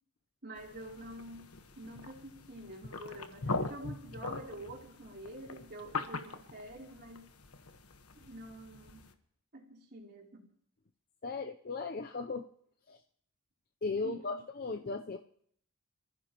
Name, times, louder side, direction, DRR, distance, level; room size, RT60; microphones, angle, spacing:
voice 1, 0.4-1.5 1.8-7.3 8.1-9.1 9.5-10.5 14.0-14.4, right 1 dB, 45° right, -1 dB, 3.4 m, -47 dB
sound 1, 0.6-9.1, left 3 dB, 85° left, 1.3 m, -42 dB
voice 2, 11.2-12.5 12.9-13.0 13.8-15.2, left 3 dB, 45° left, 6 dB, 0.6 m, -37 dB
27.5 x 15.0 x 3.0 m, 0.64 s
head